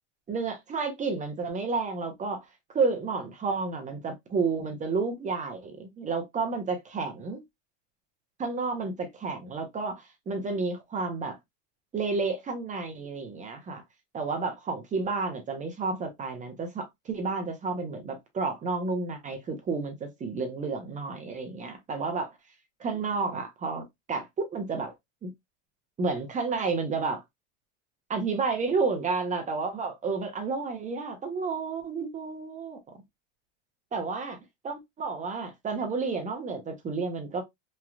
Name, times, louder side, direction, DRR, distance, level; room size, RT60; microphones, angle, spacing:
voice 1, 0.3-2.4 2.7-7.4 8.4-11.4 11.9-13.8 14.1-22.3 22.8-24.9 25.2-25.3 26.0-27.2 28.1-32.8 33.9-34.4 34.6-37.4, right 4 dB, 20° right, 0.7 m, -31 dB
3.2 x 2.3 x 2.3 m
supercardioid pair, 125°, 37 cm